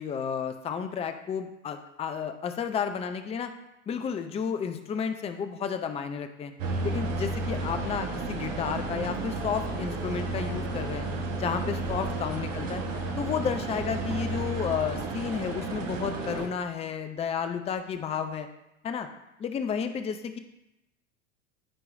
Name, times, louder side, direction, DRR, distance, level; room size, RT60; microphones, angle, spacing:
voice 1, 0.0-3.5 3.9-6.5 6.8-11.1 11.4-12.8 13.2-18.5 18.8-19.1 19.4-20.4, left 7 dB, 15° left, 8 dB, 0.5 m, -32 dB
sound 1, 6.6-16.5, right 2 dB, 70° right, 1.3 m, -32 dB
12.0 x 4.7 x 2.6 m, 0.90 s
figure-of-eight pair, 80°, 40 cm